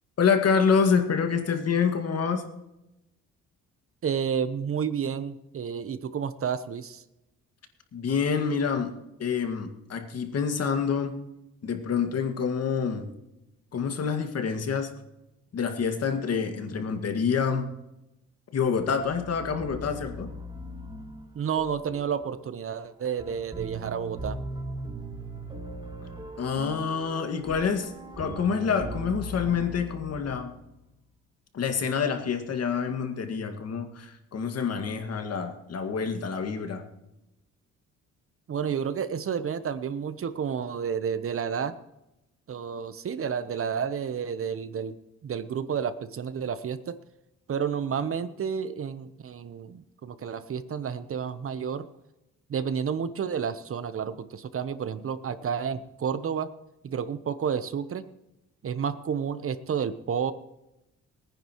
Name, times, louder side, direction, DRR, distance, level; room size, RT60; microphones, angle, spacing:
voice 1, 0.2-2.4 7.9-8.9 9.2-11.1 11.6-13.1 13.7-14.9 15.5-17.7 18.5-20.3 26.4-30.5 31.5-36.8, left 6 dB, 55° left, 6 dB, 2.0 m, -27 dB
voice 2, 4.0-7.0 21.3-24.4 38.5-41.7 42.5-45.0 45.2-47.0 47.5-51.9 52.5-56.5 56.8-58.1 58.6-60.3, right 7 dB, 45° right, 13 dB, 1.0 m, -30 dB
sound 1, 18.8-30.9, right 1 dB, 15° right, 1.6 m, -40 dB
23.0 x 10.0 x 3.1 m, 0.92 s
cardioid pair, 90°, 30 cm